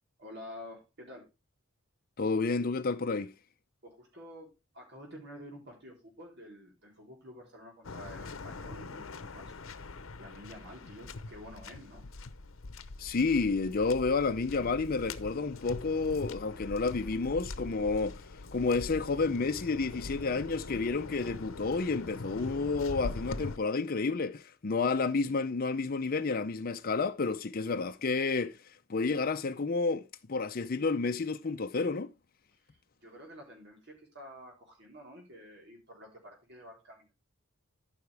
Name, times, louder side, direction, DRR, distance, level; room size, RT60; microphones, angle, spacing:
voice 1, 0.2-1.3 3.8-9.6 10.2-12.0 22.5-22.6 32.7-37.1, equal, 55° right, 3.8 m, -49 dB
voice 2, 2.2-3.3 13.0-18.2 18.5-28.6 28.9-32.1, left 4 dB, 45° left, 0.6 m, -30 dB
Waves surf, 7.8-23.6, left 3 dB, 75° left, 0.8 m, -43 dB
13.5 x 5.9 x 3.4 m
head